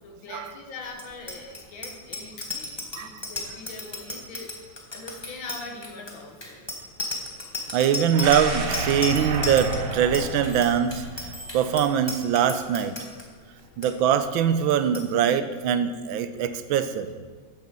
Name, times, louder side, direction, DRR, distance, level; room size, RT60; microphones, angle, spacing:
voice 1, 0.0-4.5 4.9-6.6, left 3 dB, 80° left, 2 dB, 2.2 m, -41 dB
Bicycle bell, 0.9-13.2 13.6-13.9 14.1-14.4 14.7-15.0, left 2 dB, 15° left, 1.3 m, -34 dB
voice 2, 7.7-13.0 13.8-17.1, right 8 dB, 85° right, 11 dB, 1.4 m, -23 dB
sound 1, 8.2-12.2 12.6-12.7, right 2 dB, 40° right, 0.9 m, -31 dB
9.0 x 7.9 x 6.8 m, 1.5 s
omnidirectional pair, 2.2 m